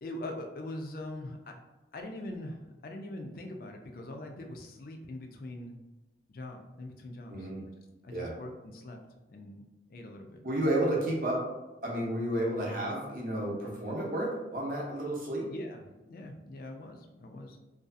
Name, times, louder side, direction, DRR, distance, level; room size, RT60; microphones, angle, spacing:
voice 1, 0.0-1.6 1.9-5.8 6.3-7.5 8.0-9.0 9.3-9.6 9.9-10.4 15.5-17.6, left 1 dB, 50° left, 3 dB, 0.3 m, -42 dB
voice 2, 7.3-7.6 8.1-8.3 10.4-11.5 11.8-15.5, right 1 dB, 50° right, -2 dB, 0.6 m, -31 dB
2.6 x 2.3 x 2.4 m, 1.1 s
head